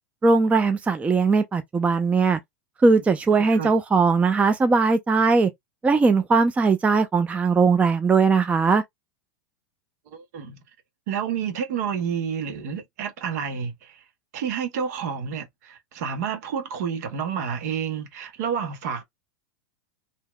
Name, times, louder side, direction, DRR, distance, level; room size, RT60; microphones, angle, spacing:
voice 1, 0.2-2.4 2.8-5.5 5.8-8.8, right 4 dB, 15° right, 0.4 m, -19 dB
voice 2, 3.3-3.7 10.1-10.6 11.1-14.0 14.3-19.0, right 7 dB, 65° right, 1.0 m, -29 dB
2.9 x 2.8 x 2.2 m
hypercardioid pair, 105°, 10 cm